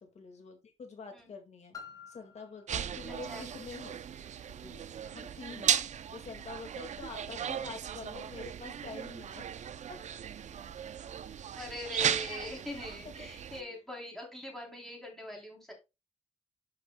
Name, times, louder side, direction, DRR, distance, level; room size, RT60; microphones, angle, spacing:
voice 1, 0.0-1.8 2.1-4.0 4.6-5.8 6.1-9.6 9.9-10.0 12.4-12.5 13.2-13.3 13.6-13.8, left 4 dB, 70° left, 4 dB, 1.9 m, -47 dB
Piano, 1.7-7.2 7.9-8.0, left 6 dB, 30° left, 2.1 m, -55 dB
sound 1, 2.7-13.6, right 9 dB, 85° right, 0.5 m, -36 dB
voice 2, 3.1-3.5 5.4-5.6 11.6-15.7, left 1 dB, 5° left, -1 dB, 3.3 m, -42 dB
11.5 x 5.8 x 2.2 m, 0.24 s
wide cardioid pair, 180°, 12 cm